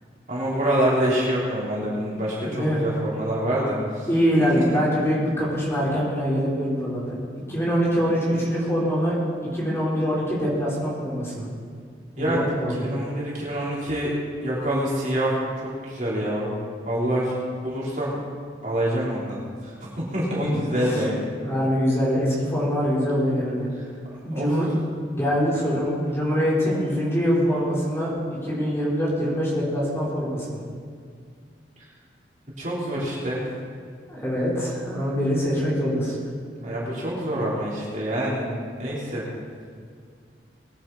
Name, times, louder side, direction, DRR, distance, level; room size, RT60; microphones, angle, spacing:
voice 1, 0.3-4.1 4.5-4.6 12.2-12.5 12.8-14.1 14.4-16.6 16.9-17.4 17.6-18.2 18.6-19.4 19.6-21.2 23.7-23.8 24.3-24.5 31.8-31.9 32.6-33.4 36.6-38.5 38.8-39.2, right 1 dB, 45° right, -7 dB, 4.1 m, -26 dB
voice 2, 2.4-3.0 4.1-7.2 7.5-9.2 9.5-11.5 12.2-12.9 20.4-20.7 21.4-23.7 24.2-24.7 25.1-28.1 28.4-30.6 34.1-36.2, equal, 15° left, -7 dB, 4.3 m, -24 dB
22.0 x 10.5 x 4.3 m, 2.1 s
head